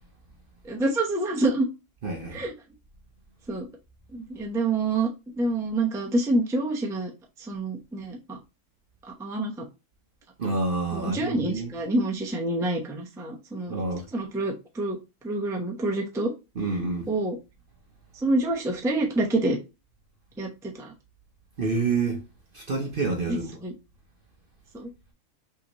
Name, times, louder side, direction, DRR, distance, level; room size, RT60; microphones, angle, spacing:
voice 1, 0.6-1.7 2.3-2.5 3.5-3.7 4.1-5.1 5.4-7.1 7.4-8.4 9.2-9.6 10.9-13.7 14.1-15.0 15.2-16.3 17.1-17.4 18.2-19.6 20.4-20.9 23.3-23.7 24.7-24.9, right 2 dB, 5° right, 0.5 m, -27 dB
voice 2, 2.0-2.4 10.4-11.7 13.7-14.1 16.6-17.1 21.6-22.2 22.5-23.6, right 3 dB, 45° right, 0.8 m, -28 dB
5.6 x 2.9 x 3.0 m
omnidirectional pair, 1.6 m